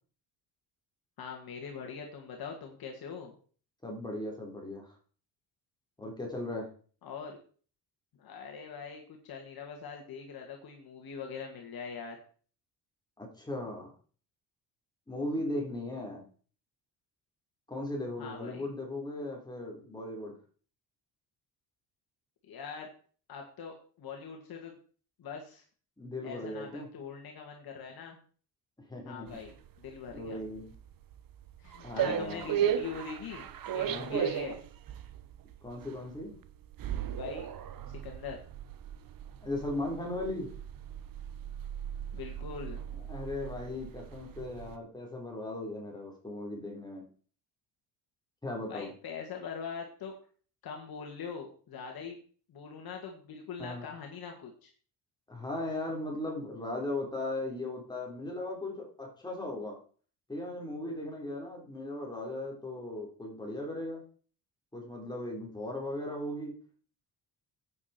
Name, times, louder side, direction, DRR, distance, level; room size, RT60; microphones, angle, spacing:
voice 1, 1.2-3.3 7.0-7.4 8.2-12.2 18.2-18.7 22.4-22.9 23.3-24.7 25.2-25.6 26.2-28.2 29.1-30.4 31.6-33.5 33.7-34.6 37.1-37.5 38.0-38.4 42.1-42.8 48.7-50.1 50.6-52.2 52.5-54.7, left 6 dB, 60° left, 2 dB, 2.1 m, -42 dB
voice 2, 3.8-5.0 6.0-6.7 13.2-13.9 15.1-16.3 17.7-20.3 26.0-26.9 28.9-29.4 30.1-30.7 31.8-32.7 33.9-34.3 35.6-36.3 39.4-40.5 43.1-47.1 48.4-48.9 53.6-53.9 55.3-59.8 60.3-64.0 64.7-66.6, left 1 dB, 10° left, -1 dB, 4.0 m, -37 dB
sound 1, 29.3-44.8, right 9 dB, 55° right, 1.0 m, -37 dB
9.9 x 8.7 x 4.5 m, 0.42 s
cardioid pair, 105°, 42 cm